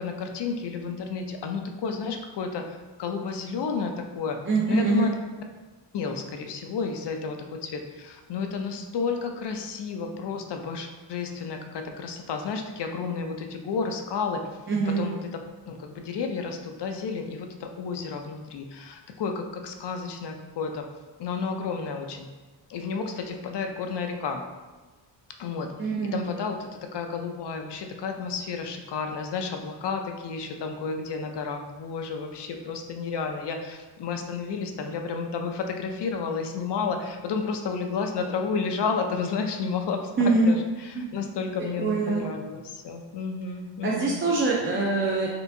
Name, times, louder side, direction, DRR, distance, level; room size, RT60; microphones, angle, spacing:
voice 1, 0.0-4.4 4.7-5.1 5.9-14.4 14.9-15.3 15.7-20.9 21.2-22.3 22.7-24.4 25.4-25.7 26.1-44.2, left 5 dB, 65° left, 4 dB, 0.5 m, -31 dB
voice 2, 4.5-5.1 14.7-15.1 25.8-26.2 40.2-40.5 40.9-41.2 41.8-42.2 43.8-45.3, right 3 dB, 30° right, -3 dB, 0.5 m, -24 dB
4.4 x 3.4 x 2.6 m, 1.3 s
wide cardioid pair, 120°, 45 cm